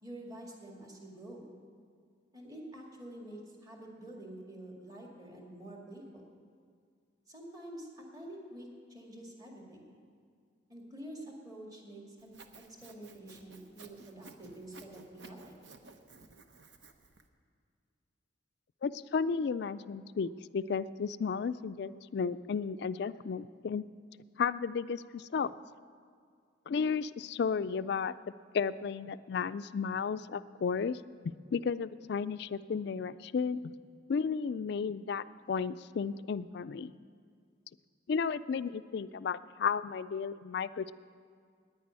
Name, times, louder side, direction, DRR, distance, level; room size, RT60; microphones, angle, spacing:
voice 1, 0.0-1.5 2.3-6.3 7.3-9.9 10.7-12.3 12.8-15.5, right 1 dB, 20° right, -1 dB, 2.0 m, -48 dB
Sawing, 12.2-17.2, right 3 dB, 65° right, 0.9 m, -55 dB
voice 2, 18.8-23.8 24.4-25.5 26.7-33.7 34.1-36.9 38.1-40.9, left 5 dB, 55° left, 14 dB, 0.3 m, -33 dB
10.5 x 9.6 x 9.6 m, 2.1 s
head